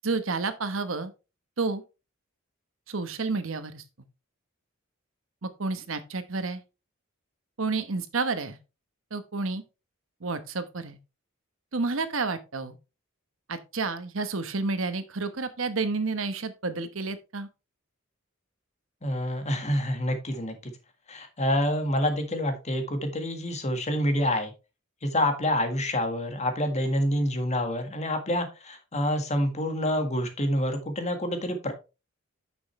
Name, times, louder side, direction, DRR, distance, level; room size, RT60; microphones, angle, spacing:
voice 1, 0.0-1.1 1.6-1.8 2.9-3.8 5.4-6.6 7.6-8.6 9.1-9.6 10.2-11.0 11.7-12.8 13.5-17.5, right 3 dB, 70° right, 1.1 m, -30 dB
voice 2, 19.0-20.7 21.1-24.5 25.0-31.7, left 1 dB, 35° left, 1.6 m, -27 dB
9.4 x 6.2 x 3.2 m
head